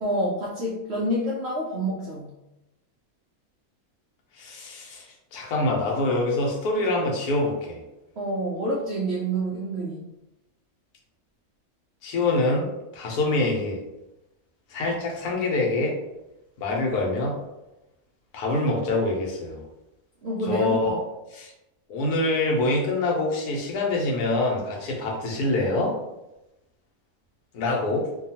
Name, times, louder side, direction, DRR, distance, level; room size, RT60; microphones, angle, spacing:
voice 1, 0.0-2.3 8.2-10.0 20.2-21.0, right 1 dB, 70° right, -4 dB, 0.6 m, -28 dB
voice 2, 4.4-5.1 5.3-7.8 12.0-12.7 12.9-13.8 14.7-16.0 16.6-17.4 18.3-19.6 20.5-21.0 21.3-21.5 21.9-26.0 27.5-28.1, left 2 dB, 90° left, 0 dB, 1.2 m, -25 dB
2.7 x 2.3 x 2.7 m, 0.93 s
omnidirectional pair, 1.6 m